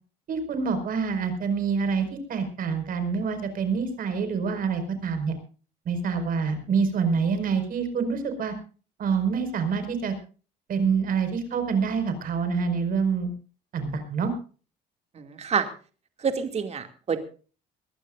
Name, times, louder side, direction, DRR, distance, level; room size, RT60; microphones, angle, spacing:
voice 1, 0.3-5.4 5.9-8.5 9.0-10.1 10.7-13.3 13.7-14.3, right 5 dB, 55° right, 8 dB, 5.1 m, -26 dB
voice 2, 15.1-15.7 16.2-17.2, right 6 dB, 40° right, 7 dB, 2.4 m, -27 dB
23.0 x 15.5 x 2.6 m, 0.38 s
cardioid pair, 110°, 17 cm